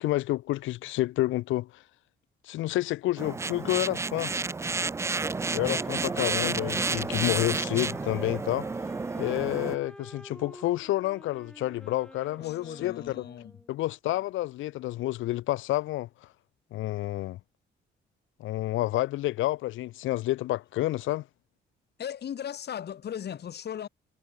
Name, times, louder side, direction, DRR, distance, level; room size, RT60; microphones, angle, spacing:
voice 1, 0.0-1.8 2.4-4.3 5.5-8.7 9.2-13.2 13.7-16.1 16.7-17.4 18.4-21.2, left 16 dB, 80° left, 0.6 m, -29 dB
sound 1, 3.2-9.8, right 4 dB, 15° right, 0.3 m, -31 dB
Wind instrument woodwind instrument, 5.4-13.8, left 1 dB, 5° left, 6.5 m, -48 dB
voice 2, 12.4-13.5 22.0-23.9, left 9 dB, 55° left, 1.9 m, -37 dB
cardioid pair, 90°, 20 cm